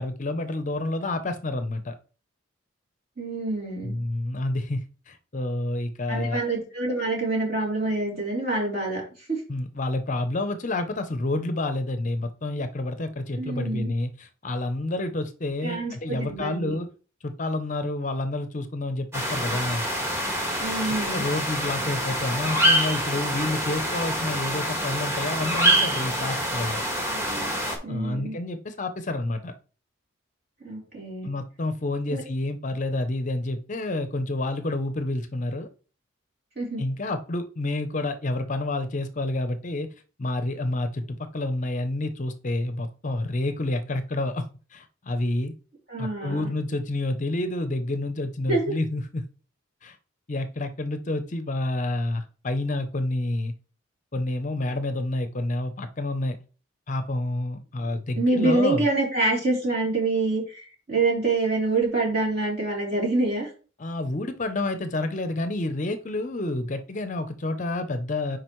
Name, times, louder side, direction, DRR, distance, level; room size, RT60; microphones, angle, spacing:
voice 1, 0.0-1.9 3.8-6.4 9.5-16.9 17.2-19.8 21.1-26.8 27.9-29.6 31.2-35.7 36.8-39.9 40.2-45.5 46.0-49.3 49.8-50.0 50.3-53.5 54.1-56.4 56.9-58.9 63.8-68.4, left 2 dB, 35° left, 9 dB, 0.6 m, -29 dB
voice 2, 3.2-4.0 6.1-9.4 13.4-13.9 15.6-16.8 20.6-21.3 27.1-27.5 27.8-28.4 30.6-31.3 32.1-32.2 36.6-36.8 45.9-46.5 48.5-48.7 58.2-63.5, right 2 dB, 50° right, -3 dB, 3.4 m, -26 dB
sound 1, 19.1-27.8, equal, 15° right, 1.4 m, -26 dB
7.7 x 5.0 x 3.1 m, 0.37 s
head